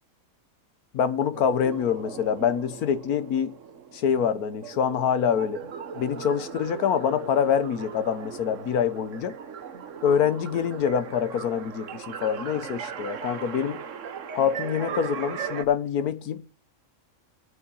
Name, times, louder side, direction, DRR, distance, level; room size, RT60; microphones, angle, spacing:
voice 1, 0.9-3.6 3.9-5.6 5.9-9.3 10.0-13.8 14.3-16.4, left 8 dB, 85° left, 1.4 m, -25 dB
sound 1, 1.3-15.6, right 7 dB, 60° right, 1.3 m, -38 dB
8.5 x 7.4 x 7.0 m
omnidirectional pair, 1.5 m